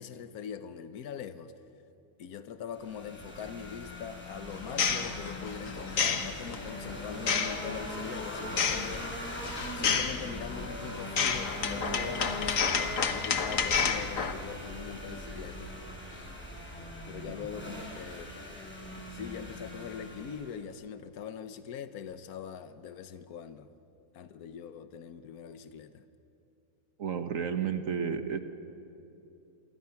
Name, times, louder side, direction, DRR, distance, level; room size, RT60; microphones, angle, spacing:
voice 1, 0.0-1.5 2.2-9.1 9.7-15.8 16.1-16.3 17.0-18.3 19.1-23.7 24.1-26.1, left 7 dB, 75° left, 11 dB, 1.4 m, -42 dB
sound 1, 2.7-20.6, left 1 dB, 5° left, 4.9 m, -41 dB
sound 2, 4.5-14.3, left 6 dB, 60° left, 1.5 m, -31 dB
voice 2, 27.0-28.4, right 7 dB, 60° right, 8 dB, 1.4 m, -31 dB
29.0 x 24.0 x 5.8 m, 2.8 s
omnidirectional pair, 1.6 m